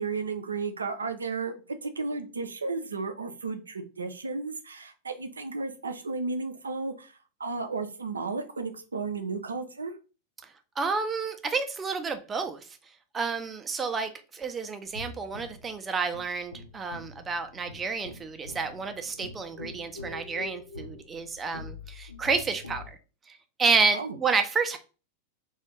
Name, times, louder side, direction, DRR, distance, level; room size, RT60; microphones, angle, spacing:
voice 1, 0.0-9.9 23.9-24.1, right 4 dB, 75° right, 8 dB, 0.4 m, -33 dB
voice 2, 10.8-12.6 13.1-23.0 23.3-24.8, right 4 dB, 20° right, 8 dB, 0.4 m, -30 dB
sound 1, 14.8-22.9, left 3 dB, 80° left, 0.3 m, -44 dB
2.4 x 2.3 x 3.0 m, 0.34 s
figure-of-eight pair, 90°, 0 cm